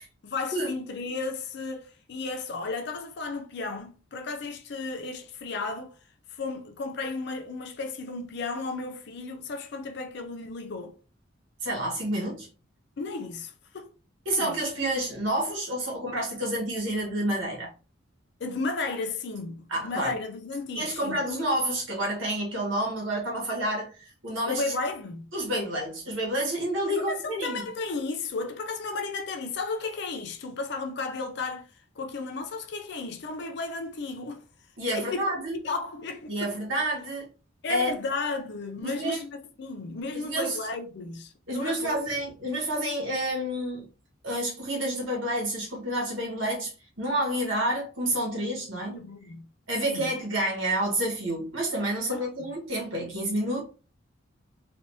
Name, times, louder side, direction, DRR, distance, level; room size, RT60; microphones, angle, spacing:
voice 1, 0.2-5.9 6.3-10.9 13.0-13.9 14.3-14.5 18.4-21.5 24.5-25.3 27.0-34.4 34.9-35.4 35.6-36.5 37.6-39.3 39.6-42.0 48.7-49.5 49.9-50.0 52.1-52.3, left 3 dB, 55° left, 0.5 m, -34 dB
voice 2, 11.6-12.5 14.2-17.7 19.7-20.1 20.7-24.7 25.3-27.6 34.8-35.6 36.3-37.3 37.7-38.0 38.8-39.2 40.2-40.6 41.5-43.9 44.2-49.0 49.7-53.6, right 1 dB, 75° right, 1.4 m, -29 dB
3.3 x 2.7 x 2.7 m
head